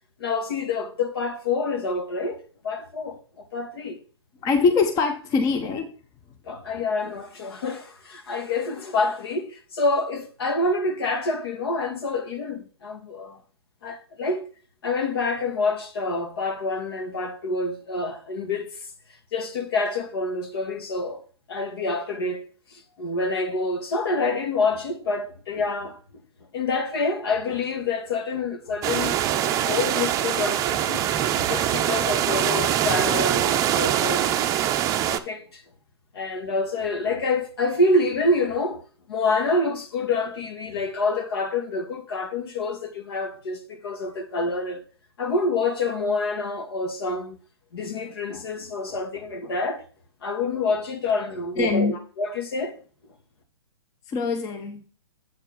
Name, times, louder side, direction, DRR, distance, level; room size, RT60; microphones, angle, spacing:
voice 1, 0.2-4.0 6.5-13.4 13.8-14.4 14.8-18.9 19.3-21.2 21.5-22.4 22.7-26.0 26.5-31.0 31.3-34.4 35.1-35.6 36.1-38.8 39.1-44.8 45.2-47.4 47.7-49.8 50.2-52.8, left 3 dB, 65° left, 1.9 m, -27 dB
voice 2, 4.4-5.9 51.6-52.0 54.1-54.8, left 4 dB, 25° left, 0.9 m, -23 dB
sound 1, 28.8-35.2, right 11 dB, 25° right, 0.6 m, -23 dB
8.1 x 4.5 x 5.2 m
hypercardioid pair, 120°, 14 cm